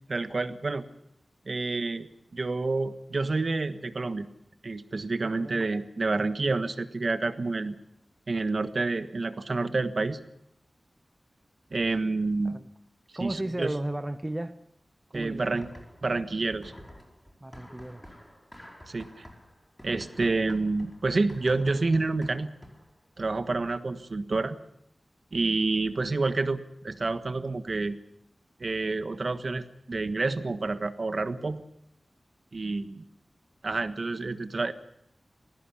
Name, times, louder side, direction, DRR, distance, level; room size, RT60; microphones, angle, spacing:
voice 1, 0.1-0.9 1.5-4.3 4.6-7.7 8.3-10.2 11.7-12.6 13.2-13.7 15.1-15.7 16.0-16.7 18.9-19.2 19.8-22.5 23.2-24.6 25.3-28.0 28.6-31.6 32.5-33.0 33.6-34.7, right 3 dB, 60° right, 1.4 m, -28 dB
voice 2, 5.2-5.7 12.4-12.7 13.1-14.6 15.1-15.6 17.4-18.1 30.2-30.5, right 1 dB, 20° right, 0.9 m, -35 dB
sound 1, 15.6-16.2 16.5-23.0, left 1 dB, 10° left, 4.8 m, -50 dB
20.0 x 16.0 x 9.8 m
wide cardioid pair, 70°, 0 cm